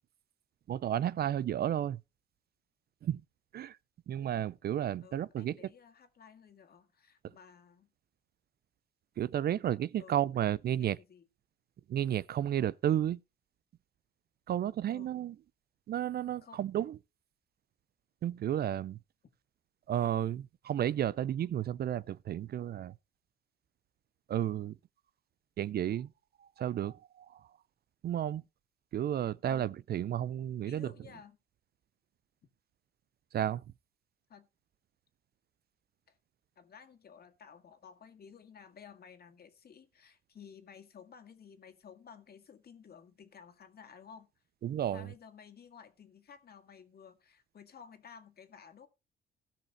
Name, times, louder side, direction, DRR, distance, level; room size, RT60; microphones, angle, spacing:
voice 1, 0.7-2.0 3.0-3.2 3.5-3.8 4.1-5.6 9.2-11.0 11.9-13.2 14.5-15.3 15.9-17.0 18.2-19.0 19.9-22.9 24.3-24.7 25.6-26.1 26.6-27.4 28.0-28.4 28.9-30.9 33.3-33.6 44.6-45.1, right 11 dB, 55° right, 0.4 m, -32 dB
voice 2, 5.0-7.9 10.0-11.3 14.9-15.3 16.4-16.6 29.4-29.7 30.6-31.4 34.3-34.5 36.1-36.2 36.6-44.3 44.9-48.9, left 7 dB, 50° left, 2.0 m, -55 dB
17.0 x 5.7 x 4.1 m
cardioid pair, 90°, 20 cm